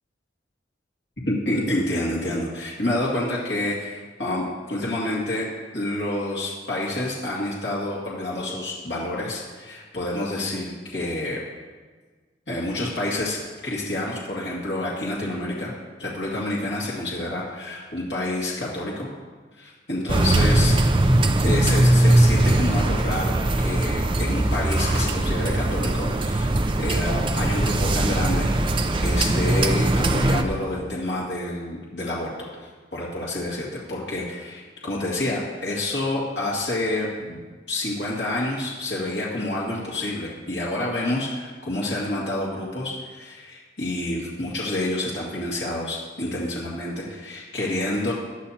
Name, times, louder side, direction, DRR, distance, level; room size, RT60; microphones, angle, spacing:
voice 1, 1.3-5.5 5.7-11.4 12.5-15.7 16.0-19.1 19.6-20.9 21.4-26.5 26.8-28.5 29.0-37.4 37.7-48.1, left 1 dB, 75° left, -6 dB, 2.2 m, -28 dB
sound 1, 20.1-30.4, right 1 dB, 30° right, 0.5 m, -20 dB
17.0 x 11.5 x 2.9 m, 1.4 s
head